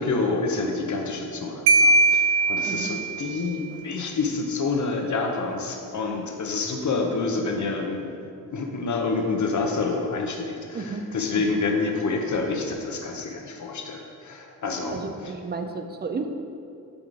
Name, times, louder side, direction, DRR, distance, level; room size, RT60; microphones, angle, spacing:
voice 1, 0.0-8.1 8.5-15.3, left 3 dB, 55° left, 3 dB, 0.8 m, -28 dB
Marimba xylophone, 1.7-3.4, right 2 dB, 90° right, 0.5 m, -20 dB
voice 2, 10.7-11.1 11.3-11.6 14.9-16.3, right 4 dB, 30° right, 6 dB, 0.5 m, -32 dB
7.0 x 3.8 x 4.7 m, 2.5 s
wide cardioid pair, 95°, 36 cm